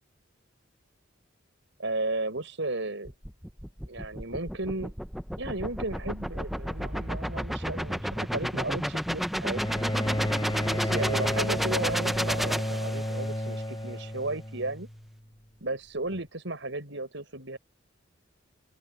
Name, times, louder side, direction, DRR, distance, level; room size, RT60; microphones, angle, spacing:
voice 1, 1.8-3.1 3.9-4.9 5.4-9.6 10.7-14.9 15.6-17.6, right 2 dB, 65° right, 5.6 m, -34 dB
sound 1, 3.0-13.4, equal, ahead, 0.6 m, -32 dB
Bowed string instrument, 9.5-15.0 16.1-16.2, equal, 20° left, 3.6 m, -31 dB
open air
head